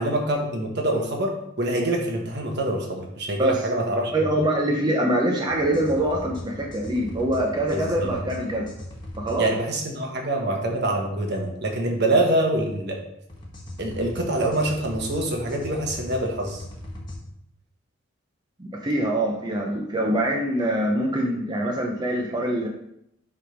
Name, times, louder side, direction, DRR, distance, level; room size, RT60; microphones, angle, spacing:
voice 1, 0.0-4.1 7.7-8.2 9.4-13.0 13.8-16.6, right 1 dB, 55° right, 2 dB, 1.3 m, -25 dB
voice 2, 4.1-8.7 9.2-9.5 18.6-22.7, right 1 dB, 20° right, -1 dB, 0.7 m, -24 dB
sound 1, 5.5-9.4 13.3-17.2, left 1 dB, 25° left, 1.3 m, -38 dB
7.3 x 3.5 x 5.1 m, 0.78 s
head